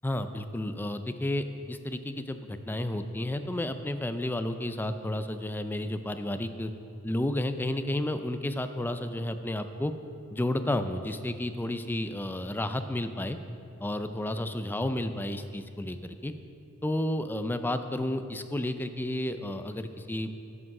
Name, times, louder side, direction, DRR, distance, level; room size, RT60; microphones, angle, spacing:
voice 1, 0.0-6.7 7.0-9.9 10.3-13.4 13.8-16.3 16.8-20.3, left 1 dB, 10° left, 9 dB, 0.3 m, -31 dB
9.2 x 6.2 x 5.4 m, 2.6 s
head